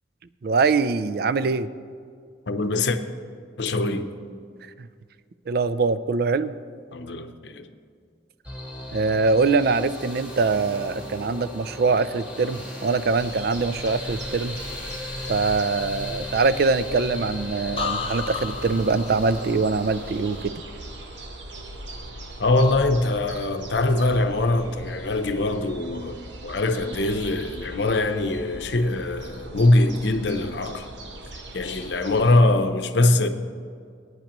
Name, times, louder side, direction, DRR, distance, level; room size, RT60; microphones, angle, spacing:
voice 1, 0.4-1.7 4.8-4.9 5.5-6.5 8.9-14.6 15.3-20.5, right 4 dB, 55° right, 0.4 m, -23 dB
voice 2, 2.5-3.0 3.6-4.1 6.9-7.7 22.4-26.2 26.4-30.9 31.5-33.3, left 2 dB, 65° left, 0.7 m, -22 dB
sound 1, 8.4-20.4, left 1 dB, 5° right, 2.0 m, -37 dB
sound 2, 13.2-32.4, right 1 dB, 75° right, 1.2 m, -40 dB
sound 3, 17.8-21.6 21.9-22.4, left 5 dB, 30° left, 0.7 m, -35 dB
19.5 x 9.5 x 3.0 m
head